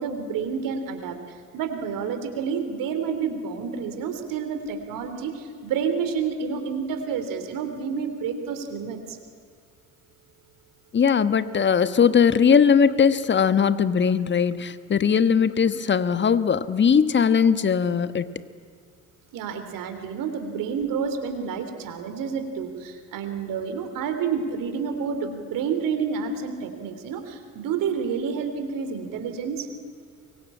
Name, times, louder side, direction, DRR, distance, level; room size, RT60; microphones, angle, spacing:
voice 1, 0.0-9.2 19.3-29.7, right 6 dB, 55° right, 8 dB, 3.6 m, -29 dB
voice 2, 10.9-18.3, left 7 dB, 30° left, 13 dB, 1.3 m, -20 dB
24.5 x 23.0 x 8.7 m, 2.1 s
figure-of-eight pair, 55°, 39 cm